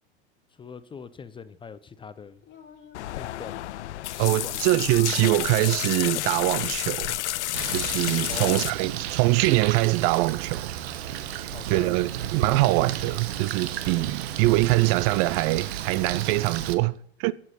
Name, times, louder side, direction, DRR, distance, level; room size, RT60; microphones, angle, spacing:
voice 1, 0.6-2.4 3.2-3.7 4.1-4.6 8.3-9.0 11.5-12.0, left 6 dB, 15° left, 0.5 m, -42 dB
Speech, 2.4-4.0 4.6-8.7, left 7 dB, 35° left, 2.7 m, -49 dB
sound 1, 2.9-8.7, left 15 dB, 85° left, 0.5 m, -30 dB
voice 2, 4.2-7.2 7.7-10.7 11.7-16.9 17.2-17.3, right 19 dB, 45° right, 0.5 m, -23 dB
Bird, 7.5-16.7, right 10 dB, 70° right, 1.1 m, -33 dB
10.5 x 7.5 x 5.7 m
hypercardioid pair, 105°, 33 cm